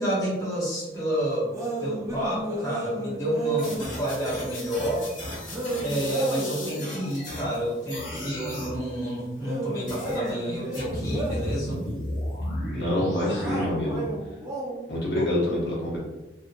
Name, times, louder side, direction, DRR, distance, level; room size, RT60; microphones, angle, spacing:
voice 1, 0.0-1.5 1.8-5.1 5.8-11.8 15.1-15.3, equal, 20° left, -8 dB, 0.9 m, -29 dB
sound 1, 1.5-3.9 5.5-7.2 9.4-11.6 13.4-14.9, right 2 dB, 15° right, 0.5 m, -33 dB
sound 2, 3.6-7.6 7.9-8.8 9.9-10.3 10.7-13.7, left 1 dB, 45° left, 1.0 m, -34 dB
voice 2, 12.7-14.0 14.9-16.0, left 1 dB, 70° left, -5 dB, 0.8 m, -26 dB
2.7 x 2.4 x 2.5 m, 1.1 s
head